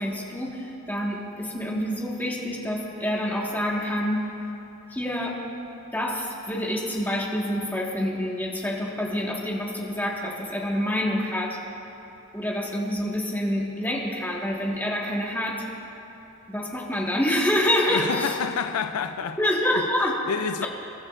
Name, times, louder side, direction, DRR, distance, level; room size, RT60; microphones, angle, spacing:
voice 1, 0.0-4.2 4.9-5.3 5.9-11.6 12.3-15.6 16.5-18.4 19.4-20.2 20.6-20.7, left 1 dB, 10° left, 1.5 m, -27 dB
voice 2, 17.9-19.4 19.8-19.9 20.3-20.7, left 6 dB, 85° left, 0.4 m, -28 dB
22.5 x 12.5 x 2.5 m
head